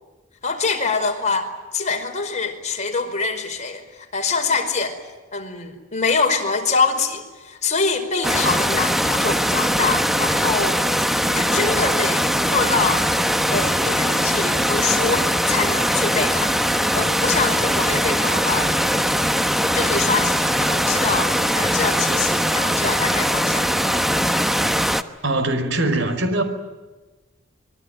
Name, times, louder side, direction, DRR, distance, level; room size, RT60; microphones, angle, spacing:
voice 1, 0.4-5.0 5.3-10.8 11.3-13.1 13.5-18.7 19.7-23.7, left 4 dB, 35° left, 5 dB, 5.0 m, -24 dB
sound 1, 8.2-25.0, equal, ahead, 1.1 m, -21 dB
voice 2, 25.2-26.4, right 2 dB, 65° right, 9 dB, 5.2 m, -22 dB
26.5 x 23.0 x 9.3 m, 1.2 s
head